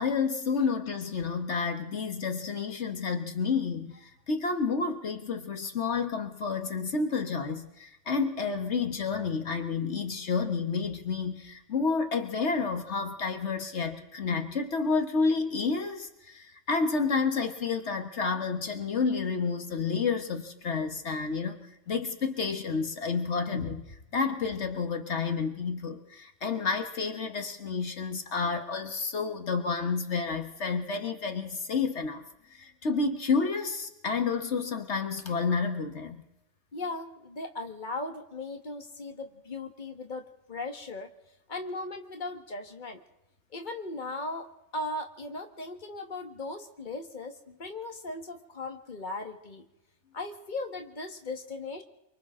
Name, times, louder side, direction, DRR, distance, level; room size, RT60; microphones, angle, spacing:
voice 1, 0.0-21.6 21.9-32.2 32.5-36.2, left 4 dB, 75° left, 6 dB, 1.7 m, -30 dB
voice 2, 36.7-41.1 41.5-43.0 43.5-49.7 50.1-51.8, left 2 dB, 40° left, 5 dB, 1.8 m, -38 dB
28.5 x 24.5 x 3.8 m, 0.88 s
omnidirectional pair, 1.2 m